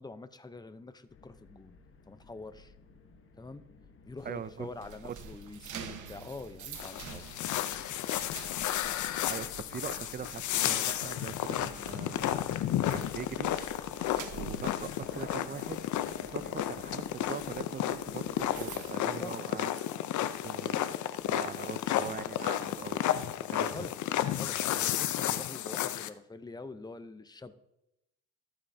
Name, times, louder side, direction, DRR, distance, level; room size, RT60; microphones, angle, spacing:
voice 1, 0.0-1.8 2.1-2.7 3.4-3.6 4.0-7.2 19.0-19.4 23.7-23.9 24.3-27.6, left 3 dB, 15° left, 11 dB, 0.7 m, -45 dB
sound 1, 1.1-18.8, left 4 dB, 45° left, 1.3 m, -53 dB
voice 2, 4.2-4.7 5.0-5.3 9.3-13.5 14.3-15.8 16.2-19.7 20.1-20.9 21.3-23.0 23.5-23.9, right 7 dB, 30° right, 16 dB, 0.5 m, -42 dB
sound 2, 4.2-20.1 20.4-20.7 21.2-22.8, right 7 dB, 75° right, 1.2 m, -50 dB
sound 3, 6.7-26.1, left 12 dB, 75° left, 0.7 m, -32 dB
13.5 x 8.7 x 2.7 m, 0.85 s
cardioid pair, 90°, 30 cm